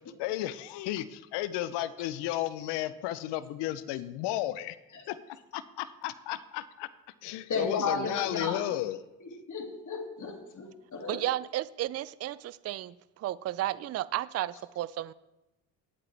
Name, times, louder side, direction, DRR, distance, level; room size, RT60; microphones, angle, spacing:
voice 1, 0.2-4.8 5.1-6.9 7.2-9.0, left 14 dB, 70° left, 15 dB, 0.8 m, -33 dB
voice 2, 7.5-8.6 9.5-11.2, left 4 dB, 45° left, 3 dB, 2.7 m, -33 dB
voice 3, 11.1-15.1, right 14 dB, 35° right, 18 dB, 0.5 m, -33 dB
18.5 x 8.3 x 3.4 m, 0.95 s
hypercardioid pair, 65°, 43 cm